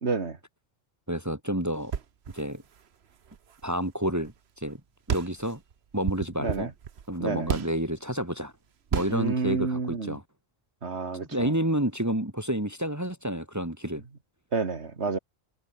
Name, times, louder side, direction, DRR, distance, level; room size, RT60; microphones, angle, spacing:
voice 1, 0.0-0.4 6.4-6.7 7.2-7.5 9.1-10.2 10.8-11.5 14.5-15.2, right 4 dB, 90° right, 2.4 m, -29 dB
voice 2, 1.1-1.9 2.3-2.6 3.6-4.8 5.1-5.6 5.9-6.7 7.1-8.5 8.9-10.2 11.3-14.0, equal, 15° right, 2.2 m, -29 dB
sound 1, 1.8-4.4 4.6-4.8 5.1-7.9 8.9-9.4, right 7 dB, 70° right, 1.3 m, -34 dB
omnidirectional pair, 1.1 m